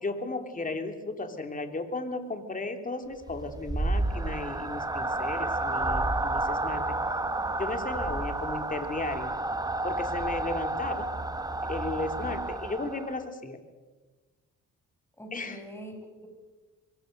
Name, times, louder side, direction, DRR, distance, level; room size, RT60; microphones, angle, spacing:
voice 1, 0.0-6.9 7.6-9.3 9.8-11.1 11.7-13.6 15.3-15.6, left 3 dB, 25° left, 6 dB, 3.2 m, -35 dB
sound 1, 3.2-13.2, right 2 dB, 10° right, 1.2 m, -31 dB
voice 2, 15.2-16.3, equal, 10° left, 3 dB, 7.3 m, -44 dB
25.5 x 22.0 x 6.7 m, 1.3 s
cardioid pair, 90°, 30 cm